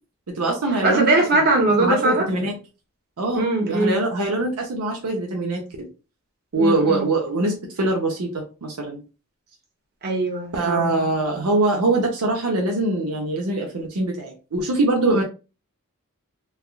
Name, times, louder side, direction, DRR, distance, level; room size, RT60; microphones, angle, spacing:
voice 1, 0.3-1.2 1.8-2.6 3.2-5.9 6.5-9.0 10.5-15.2, right 2 dB, 85° right, 0.7 m, -23 dB
voice 2, 0.8-2.3 3.3-4.0 6.5-7.1 10.0-10.9, right 2 dB, 45° right, 1.1 m, -21 dB
3.4 x 2.3 x 2.3 m
head